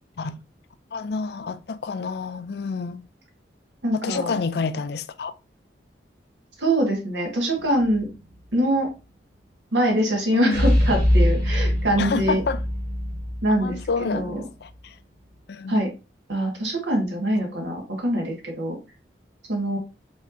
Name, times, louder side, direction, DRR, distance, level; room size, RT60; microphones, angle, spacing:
voice 1, 0.9-3.0 3.9-5.3 10.3-10.7 12.0-12.6 13.5-15.0 15.5-15.8 17.4-17.5, left 4 dB, 65° left, 0.4 m, -28 dB
voice 2, 3.8-4.4 6.6-8.1 8.5-8.9 9.7-12.4 13.4-13.8 14.1-14.4 15.7-15.9 16.3-18.8 19.5-19.8, right 1 dB, 85° right, 1.6 m, -23 dB
sound 1, 7.6-8.2 10.5-14.3, equal, 65° right, 2.1 m, -23 dB
5.2 x 3.5 x 2.6 m
head